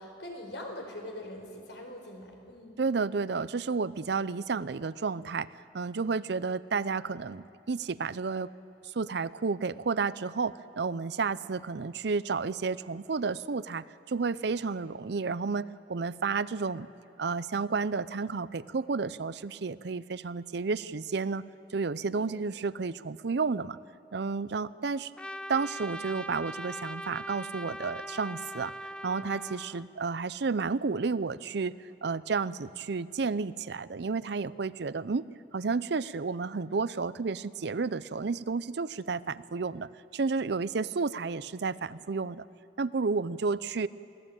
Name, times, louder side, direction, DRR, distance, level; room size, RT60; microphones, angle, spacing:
voice 1, 0.0-2.8 22.1-22.5, left 1 dB, 85° left, 2 dB, 4.5 m, -43 dB
voice 2, 2.8-5.5 5.7-8.5 8.9-16.9 17.2-21.4 21.7-23.8 24.1-25.1 25.5-28.7 29.0-31.8 32.0-35.3 35.5-42.5 42.8-43.9, right 4 dB, 65° right, 17 dB, 0.6 m, -31 dB
Trumpet, 25.2-29.9, equal, 5° left, 0.4 m, -40 dB
23.5 x 17.0 x 8.9 m, 2.6 s
head